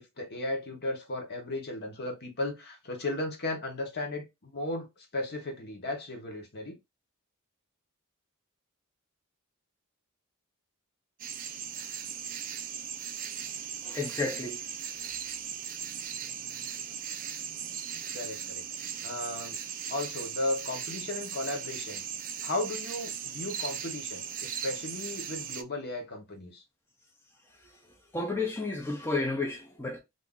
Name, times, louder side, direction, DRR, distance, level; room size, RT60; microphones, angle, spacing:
voice 1, 0.0-4.9 5.1-6.8 18.1-18.6 19.0-19.6 19.9-22.0 22.4-26.6, left 2 dB, 50° left, 1.0 m, -35 dB
sound 1, 11.2-25.6, right 8 dB, 40° right, 0.4 m, -38 dB
voice 2, 13.8-14.6 28.1-30.0, left 3 dB, 10° left, 0.6 m, -32 dB
2.6 x 2.6 x 3.6 m
head